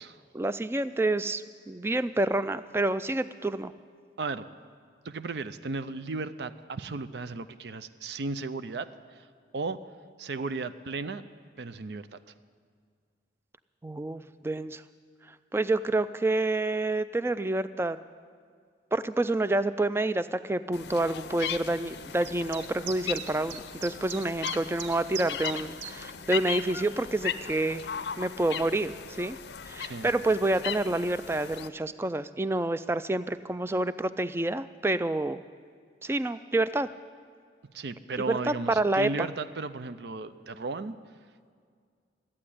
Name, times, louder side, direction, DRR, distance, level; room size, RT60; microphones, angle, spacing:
voice 1, 0.3-3.7 13.8-14.8 15.5-18.0 18.9-27.8 28.2-29.4 29.6-35.4 36.0-36.9 38.3-39.3, right 2 dB, 15° right, 13 dB, 0.3 m, -28 dB
voice 2, 5.0-9.3 9.5-9.8 10.2-11.2 11.6-12.2 29.8-30.1 37.7-40.9, right 3 dB, 70° right, 12 dB, 0.5 m, -35 dB
sound 1, 20.7-31.7, left 7 dB, 70° left, 0.5 m, -38 dB
sound 2, 22.2-25.9, right 7 dB, 85° right, 0.9 m, -40 dB
14.0 x 8.6 x 10.0 m, 2.1 s
head